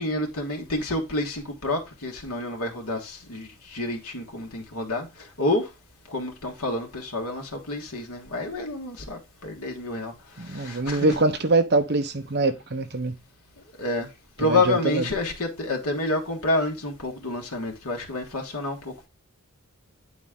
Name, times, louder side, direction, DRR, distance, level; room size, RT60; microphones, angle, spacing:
voice 1, 0.0-5.7 6.1-11.1 13.8-14.1 14.4-19.1, left 2 dB, 90° left, 1.7 m, -29 dB
voice 2, 10.4-13.2 14.4-15.0, right 2 dB, 50° right, 0.9 m, -24 dB
8.7 x 4.2 x 3.7 m
head